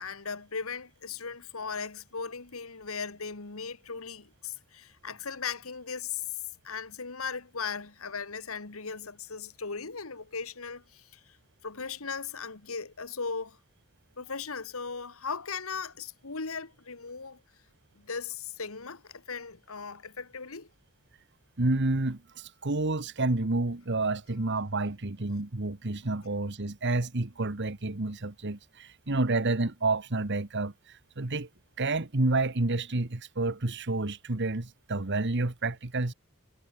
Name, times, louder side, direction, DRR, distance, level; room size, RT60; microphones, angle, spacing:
voice 1, 0.0-11.4 11.6-13.6 14.2-17.4 17.9-20.7, left 5 dB, 75° left, 1.7 m, -38 dB
voice 2, 21.6-31.5 31.8-36.1, right 2 dB, 55° right, 1.4 m, -29 dB
head